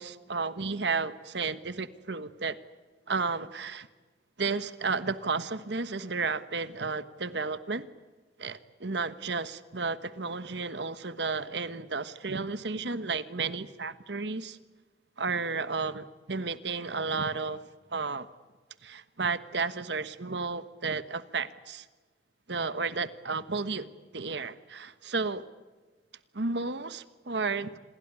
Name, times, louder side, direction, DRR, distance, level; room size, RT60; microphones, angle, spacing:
voice 1, 0.0-2.6 3.1-3.9 4.4-7.9 8.4-14.6 15.2-17.6 17.9-18.3 18.8-21.8 22.5-23.9 24.1-25.4 26.3-27.8, right 4 dB, 65° right, 14 dB, 1.3 m, -32 dB
27.5 x 21.0 x 9.8 m, 1.3 s
head